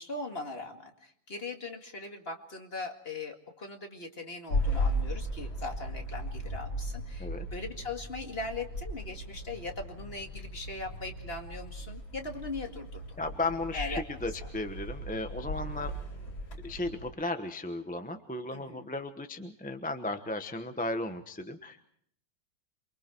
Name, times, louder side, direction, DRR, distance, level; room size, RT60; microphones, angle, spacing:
voice 1, 0.0-13.0 13.7-14.0 18.5-18.9, left 3 dB, 30° left, 3 dB, 2.2 m, -40 dB
sound 1, 4.5-17.1, equal, 75° left, 4.7 m, -37 dB
voice 2, 13.2-15.9 16.6-21.9, left 2 dB, 5° left, 7 dB, 0.7 m, -35 dB
28.0 x 23.5 x 4.6 m, 0.66 s
omnidirectional pair, 2.1 m